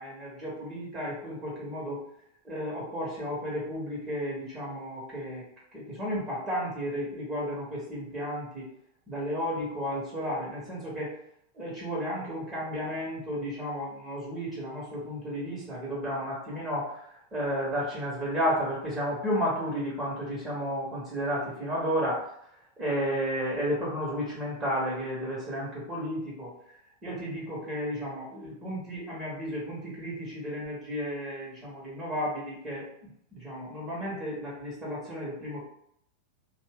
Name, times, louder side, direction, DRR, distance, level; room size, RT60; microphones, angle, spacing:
voice 1, 0.0-2.0 2.4-5.4 5.7-8.7 9.1-11.1 11.5-17.0 17.3-22.2 22.8-26.5 27.0-32.8 33.3-35.6, equal, 20° right, -6 dB, 1.2 m, -32 dB
2.5 x 2.3 x 3.5 m, 0.70 s
figure-of-eight pair, 90°, 0 cm